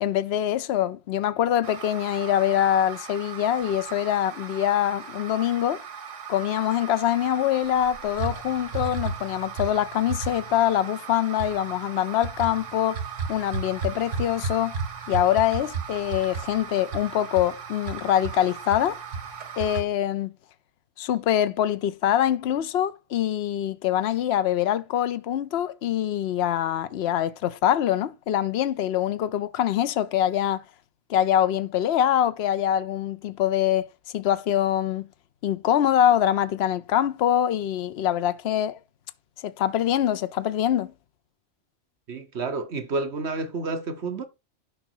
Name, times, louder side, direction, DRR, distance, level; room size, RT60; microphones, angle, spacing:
voice 1, 0.0-5.8 6.3-13.0 13.3-14.8 15.1-19.0 19.6-20.3 21.0-30.6 31.1-33.9 34.1-35.1 35.4-38.8 39.4-40.9, left 11 dB, 65° left, 0.9 m, -24 dB
sound 1, 1.6-19.8, right 4 dB, 85° right, 1.6 m, -35 dB
voice 2, 42.1-44.2, right 3 dB, 65° right, 1.3 m, -30 dB
12.0 x 5.1 x 4.4 m
omnidirectional pair, 1.2 m